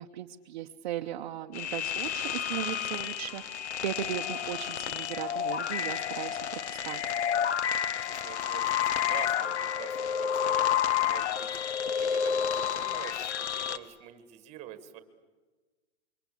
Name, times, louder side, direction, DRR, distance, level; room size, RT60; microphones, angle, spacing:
voice 1, 0.0-7.0, right 11 dB, 40° right, 3 dB, 0.9 m, -37 dB
sound 1, 1.5-13.8, left 9 dB, 65° left, 1.5 m, -30 dB
voice 2, 4.4-4.8 8.0-11.5 12.0-15.0, right 11 dB, 15° right, 11 dB, 1.6 m, -46 dB
27.5 x 23.5 x 8.4 m, 1.3 s
hypercardioid pair, 170°, 37 cm